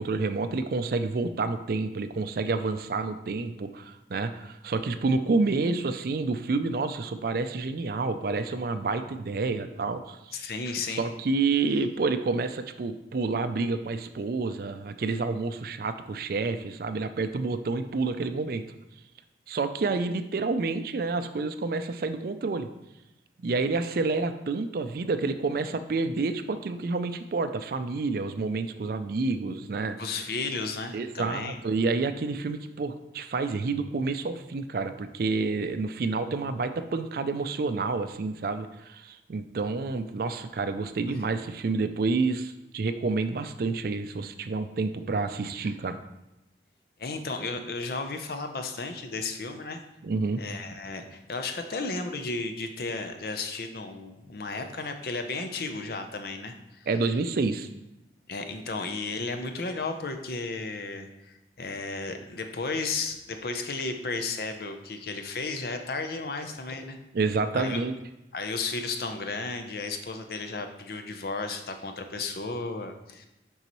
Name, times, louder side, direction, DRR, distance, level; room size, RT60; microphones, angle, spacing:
voice 1, 0.0-10.3 11.0-18.6 19.5-22.7 23.4-30.0 30.9-46.0 50.0-50.4 56.9-57.7 67.1-67.9, right 3 dB, 55° right, 10 dB, 0.4 m, -29 dB
voice 2, 10.3-11.0 30.0-31.6 47.0-49.8 50.4-56.9 58.3-67.0 67.5-67.8 68.3-73.3, left 3 dB, 60° left, 6 dB, 0.6 m, -34 dB
6.7 x 5.5 x 3.0 m, 0.92 s
head